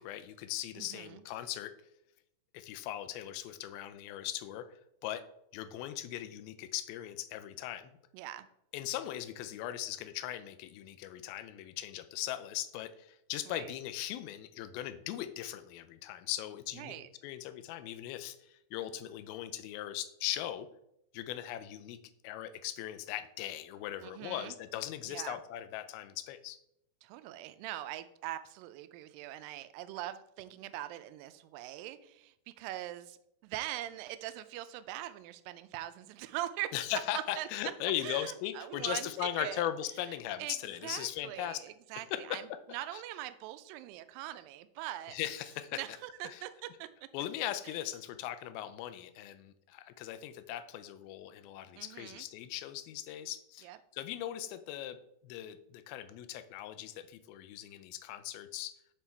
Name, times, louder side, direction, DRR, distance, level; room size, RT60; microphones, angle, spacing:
voice 1, 0.0-1.7 2.5-5.2 5.5-7.9 8.7-16.9 17.2-20.7 21.1-22.0 22.2-26.6 36.7-41.6 42.1-42.4 42.9-43.0 45.1-45.8 46.3-46.4 47.1-55.0 55.2-58.8, left 12 dB, 85° left, 11 dB, 2.4 m, -39 dB
voice 2, 0.8-1.2 8.1-8.5 13.5-13.7 16.8-17.1 24.0-24.6 25.0-25.4 27.0-33.2 33.4-36.7 37.1-37.5 38.0-39.7 40.0-40.1 40.4-45.2 45.7-46.9 47.6-47.8 51.8-52.3 53.6-53.8, right 14 dB, 80° right, 12 dB, 2.1 m, -42 dB
7.4 x 4.2 x 4.5 m, 0.78 s
omnidirectional pair, 4.3 m